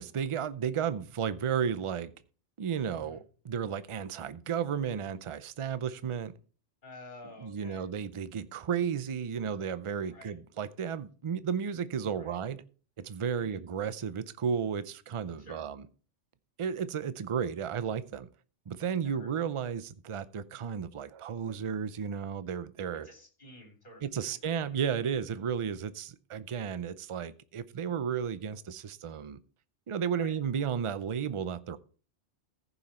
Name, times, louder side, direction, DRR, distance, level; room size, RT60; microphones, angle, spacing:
voice 1, 0.0-2.1 2.6-3.2 3.4-6.3 7.4-12.6 13.0-15.8 16.6-18.3 18.7-23.1 24.0-29.4 29.9-31.8, right 7 dB, 45° right, 0.4 m, -33 dB
voice 2, 6.8-7.8 10.1-10.3 12.1-12.4 13.4-13.6 15.4-15.6 19.0-19.3 22.9-24.8 30.1-30.3, left 1 dB, 45° left, 3.2 m, -51 dB
14.5 x 5.6 x 4.3 m
omnidirectional pair, 1.2 m